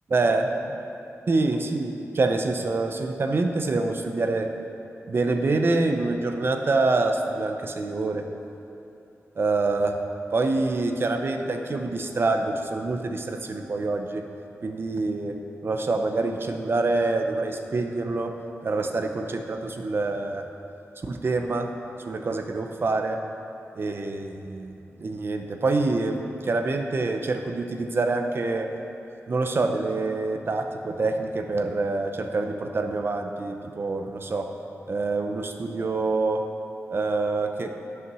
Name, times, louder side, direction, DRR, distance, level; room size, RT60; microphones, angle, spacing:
voice 1, 0.1-0.8 1.3-4.5 5.1-8.2 9.4-9.9 10.3-14.2 14.6-15.3 15.6-18.3 18.6-20.4 21.0-21.7 22.1-23.2 23.8-24.7 25.0-28.7 29.3-34.5 34.9-36.4 36.9-37.7, right 3 dB, 50° right, 5 dB, 0.7 m, -26 dB
10.5 x 5.8 x 6.1 m, 2.8 s
wide cardioid pair, 135°, 5 cm